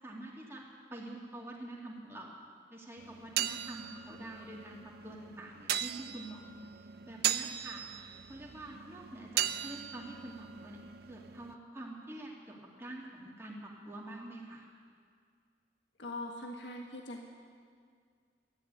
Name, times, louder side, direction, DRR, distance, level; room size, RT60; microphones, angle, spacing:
voice 1, 0.0-0.6 0.9-2.3 2.7-6.5 7.1-7.8 8.3-10.8 11.1-14.6, right 1 dB, 15° right, -2 dB, 2.3 m, -46 dB
sound 1, 3.0-11.6, right 10 dB, 60° right, 0.5 m, -38 dB
voice 2, 16.0-17.2, left 1 dB, 85° left, 1 dB, 1.6 m, -41 dB
13.5 x 10.5 x 9.5 m, 2.1 s
head